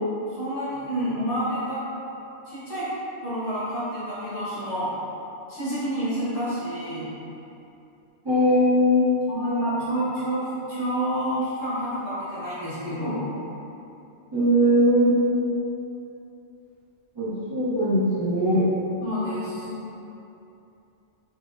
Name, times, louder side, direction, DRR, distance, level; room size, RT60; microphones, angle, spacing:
voice 1, 0.3-1.8 2.5-2.9 3.2-4.9 5.5-7.1 9.3-13.3 19.0-19.7, equal, 75° left, -11 dB, 1.4 m, -28 dB
voice 2, 8.2-9.1 14.3-15.2 17.2-18.6 19.6-19.7, equal, 30° right, -13 dB, 0.5 m, -20 dB
3.9 x 2.1 x 2.3 m, 2.8 s
omnidirectional pair, 1.2 m